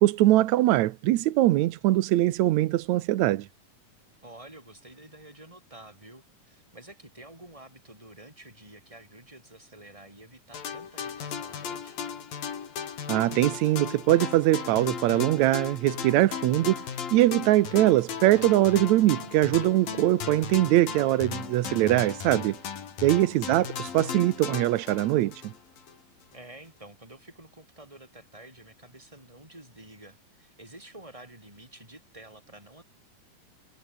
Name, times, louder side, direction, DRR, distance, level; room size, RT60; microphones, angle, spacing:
voice 1, 0.0-3.5 13.1-16.8 17.1-22.6 23.0-25.5, right 15 dB, 70° right, 1.8 m, -22 dB
voice 2, 4.2-12.0 23.0-23.4 26.3-32.8, right 1 dB, 10° right, 7.4 m, -49 dB
sound 1, 10.5-26.0, left 7 dB, 85° left, 5.0 m, -36 dB
omnidirectional pair, 4.0 m